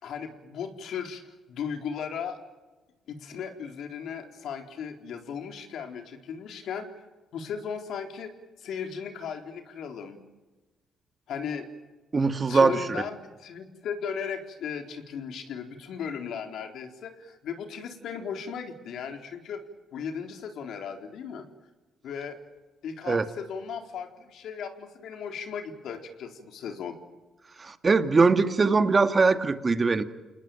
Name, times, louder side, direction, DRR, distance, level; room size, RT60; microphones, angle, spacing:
voice 1, 0.0-1.2 1.5-2.4 3.1-6.9 7.3-8.3 8.6-10.2 11.3-11.7 12.5-19.6 19.9-21.5 22.0-22.4 22.8-27.0, left 7 dB, 75° left, 5 dB, 3.9 m, -36 dB
voice 2, 12.1-12.8 23.1-23.3 27.6-30.0, right 4 dB, 30° right, 8 dB, 2.2 m, -21 dB
29.0 x 20.0 x 9.1 m, 1.2 s
cardioid pair, 90°, 0 cm